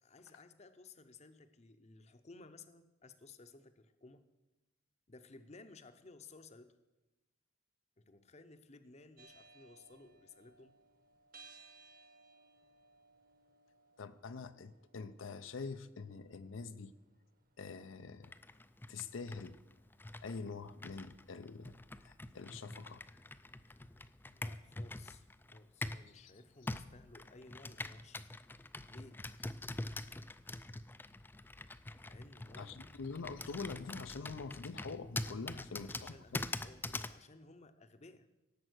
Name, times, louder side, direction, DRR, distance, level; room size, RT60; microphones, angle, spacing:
voice 1, 0.0-4.2 5.1-6.8 8.0-10.7 23.7-28.3 28.9-29.2 32.0-32.9 35.5-38.3, left 3 dB, 35° left, 10 dB, 0.7 m, -58 dB
sound 1, 9.2-21.3, right 4 dB, 45° right, 1.3 m, -64 dB
voice 2, 14.0-16.9 17.6-18.3 18.9-19.6 20.2-21.8 22.0-23.0 26.1-26.3 32.6-36.5, left 4 dB, 80° left, 11 dB, 0.5 m, -45 dB
Computer keyboard, 18.2-26.1 26.7-37.2, left 2 dB, 10° left, 0.3 m, -45 dB
17.5 x 7.4 x 6.3 m, 1.0 s
head